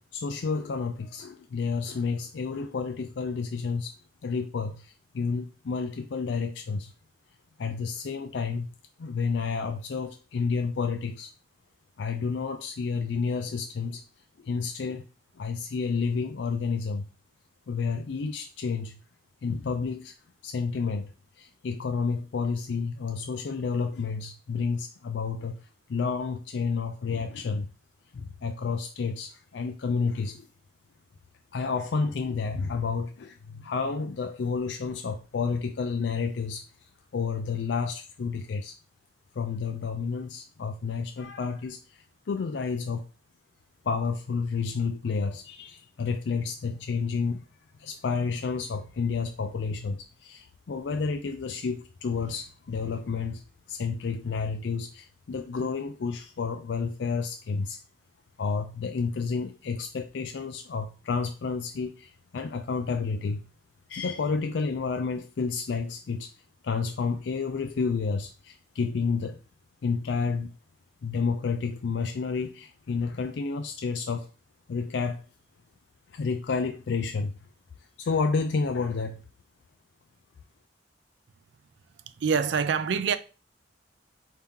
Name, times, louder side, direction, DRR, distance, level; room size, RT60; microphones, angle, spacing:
voice 1, 0.1-3.9 4.2-6.9 7.6-8.7 9.0-11.3 12.0-14.0 14.4-15.1 15.4-17.1 17.7-19.0 19.4-20.1 20.4-25.6 25.9-27.7 28.1-30.5 31.5-36.6 37.1-38.7 39.3-43.0 43.8-47.4 47.8-53.4 53.7-57.8 58.4-63.4 63.9-66.3 66.6-69.4 69.8-70.5 71.0-74.3 74.7-75.2 76.1-77.3 78.0-79.2, left 5 dB, 70° left, 0.4 m, -30 dB
voice 2, 82.2-83.2, right 6 dB, 70° right, 0.4 m, -25 dB
4.5 x 2.8 x 3.7 m
head